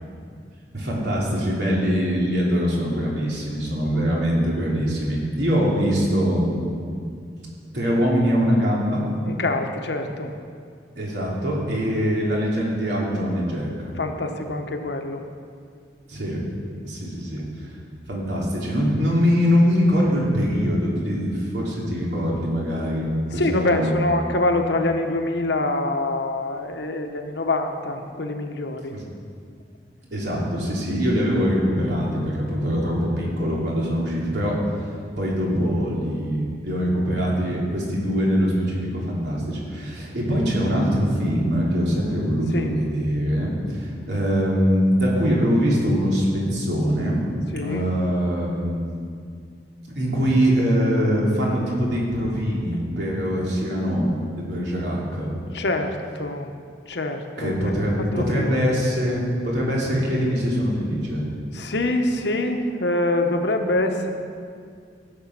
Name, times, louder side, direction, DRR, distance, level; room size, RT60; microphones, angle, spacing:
voice 1, 0.7-6.6 7.7-9.0 11.0-13.9 16.1-16.4 16.8-17.4 18.1-23.9 28.9-29.0 30.1-34.5 35.2-47.2 47.6-48.9 49.9-54.1 54.4-55.3 57.4-61.2, equal, 70° right, -4 dB, 3.1 m, -23 dB
voice 2, 9.2-10.3 14.0-15.2 23.3-29.0 42.5-42.7 47.5-47.9 55.5-56.5 56.9-58.6 61.5-64.1, left 2 dB, 70° left, 5 dB, 1.1 m, -25 dB
15.5 x 7.2 x 5.9 m, 2.2 s
head